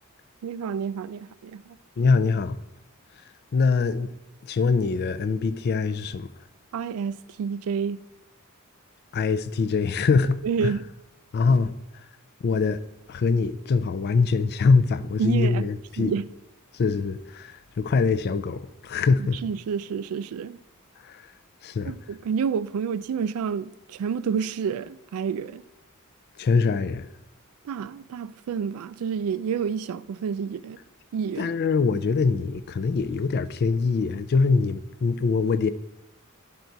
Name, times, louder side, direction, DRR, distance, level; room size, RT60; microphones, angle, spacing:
voice 1, 0.4-1.8 6.7-8.0 10.4-10.8 15.2-15.7 16.0-16.3 19.2-20.6 21.8-25.6 27.6-30.8 31.1-31.5, right 6 dB, 75° right, 0.3 m, -29 dB
voice 2, 2.0-2.6 3.5-4.1 4.4-6.3 9.1-10.7 11.3-11.8 12.4-12.8 13.1-16.1 16.7-19.4 21.0-21.2 21.6-21.9 26.4-27.1 31.4-35.7, left 4 dB, 45° left, 0.4 m, -23 dB
10.0 x 4.0 x 4.5 m
head